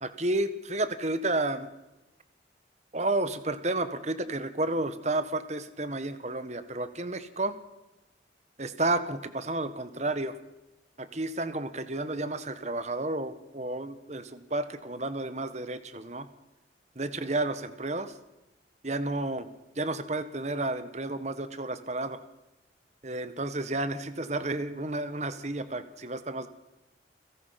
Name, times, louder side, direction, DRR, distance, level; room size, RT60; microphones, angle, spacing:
voice 1, 0.0-1.7 2.9-7.6 8.6-10.4 11.0-16.3 16.9-18.1 18.8-19.5 19.7-22.2 23.0-26.5, right 2 dB, 35° right, 11 dB, 1.5 m, -31 dB
29.5 x 17.0 x 5.9 m, 1.0 s
head